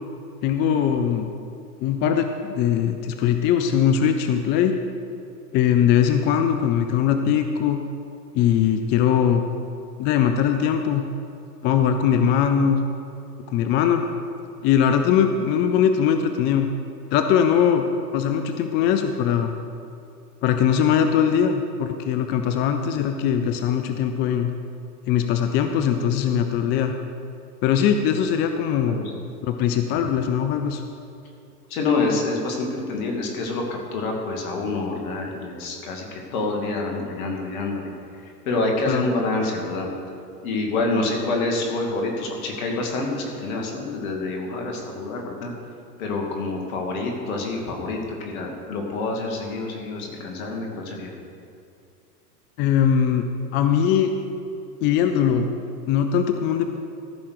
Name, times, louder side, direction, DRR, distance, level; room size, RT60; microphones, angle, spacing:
voice 1, 0.4-1.3 1.8-4.7 5.5-7.8 8.3-9.4 10.0-11.1 11.6-12.8 13.5-14.1 14.6-16.7 17.1-17.9 18.1-19.5 20.4-24.5 25.1-27.0 27.6-29.0 29.4-30.8 38.9-39.0 52.6-53.3 53.5-54.1 54.8-55.5 55.9-56.8, left 8 dB, 25° left, 7 dB, 0.4 m, -21 dB
voice 2, 28.9-29.2 31.7-33.6 33.9-37.9 38.2-39.9 40.4-45.5 46.0-51.1, left 3 dB, 60° left, 1 dB, 2.7 m, -27 dB
14.5 x 5.7 x 6.6 m, 2.6 s
hypercardioid pair, 110°, 48 cm